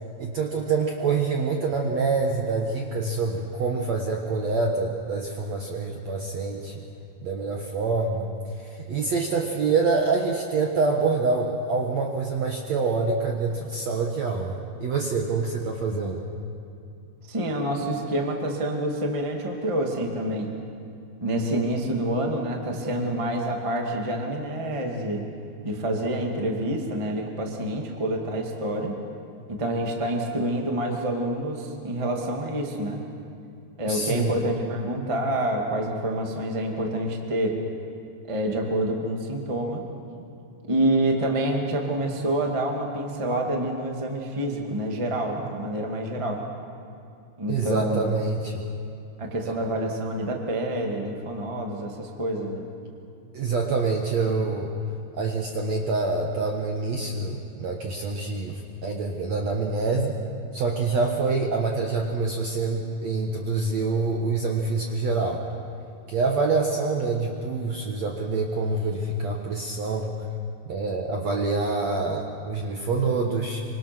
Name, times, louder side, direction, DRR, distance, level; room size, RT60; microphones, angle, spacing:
voice 1, 0.2-6.8 7.2-8.3 8.6-16.2 33.9-34.3 47.5-48.6 49.4-49.5 53.3-54.7 55.2-60.1 60.5-65.4 66.1-70.1 70.6-73.6, right 4 dB, 75° right, 1 dB, 1.6 m, -26 dB
voice 2, 17.3-20.5 21.2-25.3 25.6-29.0 29.5-33.0 33.8-37.6 38.3-39.8 40.7-46.4 47.4-48.2 49.2-52.6, right 1 dB, 35° right, 1 dB, 0.4 m, -27 dB
26.0 x 25.5 x 6.1 m, 2.6 s
omnidirectional pair, 5.3 m